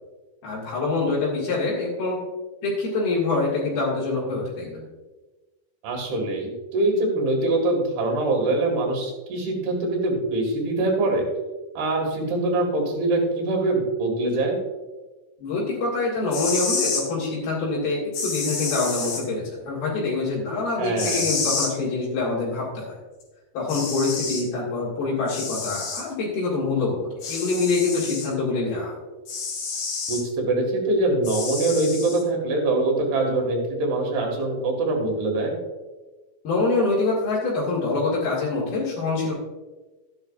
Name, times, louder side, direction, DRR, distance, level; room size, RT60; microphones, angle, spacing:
voice 1, 0.4-2.2 2.6-4.8 15.4-23.0 23.5-29.0 36.4-39.3, left 3 dB, 75° left, -8 dB, 3.9 m, -25 dB
voice 2, 5.8-11.3 11.8-14.6 20.8-21.3 30.1-35.6, right 2 dB, 90° right, 1 dB, 4.0 m, -23 dB
sound 1, 16.2-17.0 18.1-19.2 21.0-21.7 23.2-23.3 23.7-24.5 25.3-26.0 27.2-28.3 29.3-30.2 31.2-32.2, left 4 dB, 60° left, 3.2 m, -29 dB
13.0 x 10.5 x 2.5 m, 1.2 s
omnidirectional pair, 4.4 m